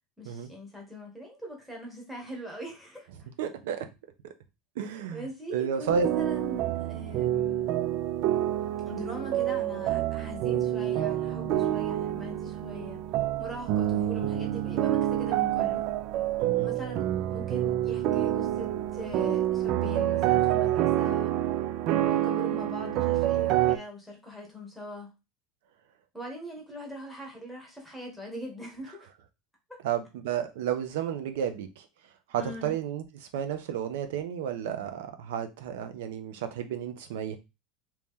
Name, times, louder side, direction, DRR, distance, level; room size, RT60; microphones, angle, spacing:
voice 1, 0.2-3.3 5.1-7.9 8.8-13.0 13.4-15.9 16.6-21.3 21.9-25.1 26.1-29.1 32.4-32.7, left 1 dB, ahead, 1.2 m, -41 dB
voice 2, 3.4-3.9 4.2-4.3 4.8-5.2 5.5-6.1 16.4-16.7 29.8-31.9 32.3-37.4, right 8 dB, 85° right, 0.7 m, -32 dB
sound 1, 5.9-23.8, right 13 dB, 50° right, 0.3 m, -27 dB
3.0 x 2.8 x 3.6 m
supercardioid pair, 150°, 0 cm